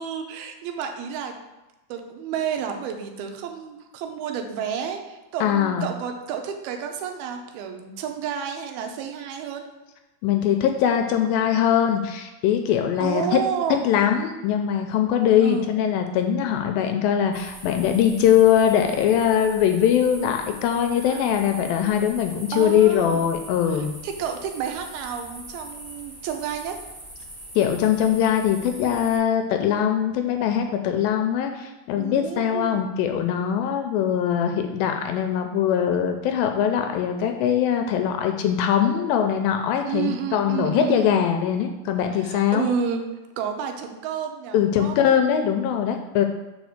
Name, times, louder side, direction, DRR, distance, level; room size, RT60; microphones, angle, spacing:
voice 1, 0.0-1.4 1.9-9.6 13.0-13.9 15.4-15.7 21.0-21.3 22.5-23.2 23.7-26.8 32.0-32.8 39.8-41.0 42.2-43.1 43.4-45.0, right 7 dB, 85° right, 4 dB, 2.6 m, -30 dB
voice 2, 5.4-5.9 10.2-13.4 13.8-24.0 27.6-42.7 44.5-46.3, left 9 dB, 80° left, 5 dB, 2.2 m, -22 dB
sound 1, 17.3-29.2, right 1 dB, 20° right, 1.3 m, -42 dB
5.2 x 5.0 x 6.4 m, 1.1 s
omnidirectional pair, 4.4 m